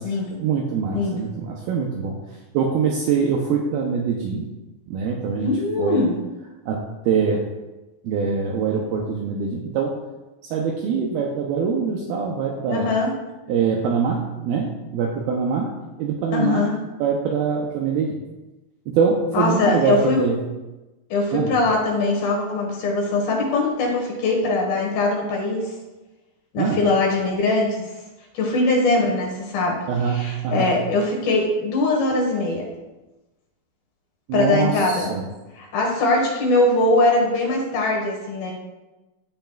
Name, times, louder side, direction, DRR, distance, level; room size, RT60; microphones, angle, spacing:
voice 1, 0.4-2.2 2.5-4.5 4.9-6.0 6.7-7.4 8.0-9.9 10.5-12.9 13.5-15.7 16.0-16.6 17.0-18.2 18.9-20.4 21.3-21.5 26.6-26.8 29.9-30.7 34.3-35.2, right 6 dB, 80° right, 0 dB, 2.2 m, -23 dB
voice 2, 5.4-6.2 12.7-13.1 16.3-16.8 19.3-20.3 21.1-25.7 26.5-27.9 28.3-29.8 30.0-32.7 34.3-35.1 35.5-38.5, left 2 dB, 65° left, -1 dB, 3.0 m, -21 dB
15.5 x 5.7 x 2.3 m, 1.1 s
omnidirectional pair, 5.1 m